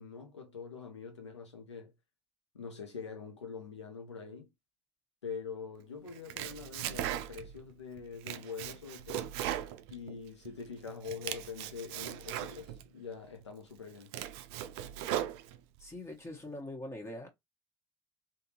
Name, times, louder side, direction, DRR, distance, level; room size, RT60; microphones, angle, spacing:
voice 1, 0.0-1.9 2.5-4.5 5.2-9.3 9.9-14.1, left 5 dB, 90° left, 0.9 m, -44 dB
Domestic sounds home sounds, 6.1-7.6 8.0-10.5 10.9-12.9 13.4-13.5 13.9-15.8, right 12 dB, 70° right, 0.4 m, -38 dB
voice 2, 15.8-17.3, left 1 dB, 20° left, 1.2 m, -43 dB
3.5 x 2.6 x 2.9 m
figure-of-eight pair, 55°, 14 cm